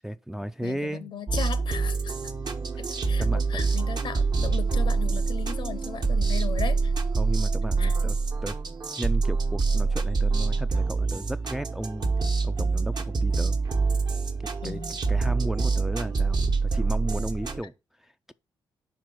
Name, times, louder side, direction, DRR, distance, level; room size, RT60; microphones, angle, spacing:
voice 1, 0.0-1.1 3.2-3.6 7.2-8.2 8.4-8.6 9.0-12.1 12.4-13.6 14.4-14.8 15.1-17.7 18.0-18.3, right 1 dB, 5° right, 0.4 m, -34 dB
voice 2, 0.6-2.2 2.8-6.9 7.8-8.0 14.6-15.0, left 7 dB, 60° left, 0.7 m, -37 dB
sound 1, 1.3-17.6, right 4 dB, 50° right, 1.2 m, -26 dB
4.8 x 4.6 x 6.1 m
supercardioid pair, 65°, 9 cm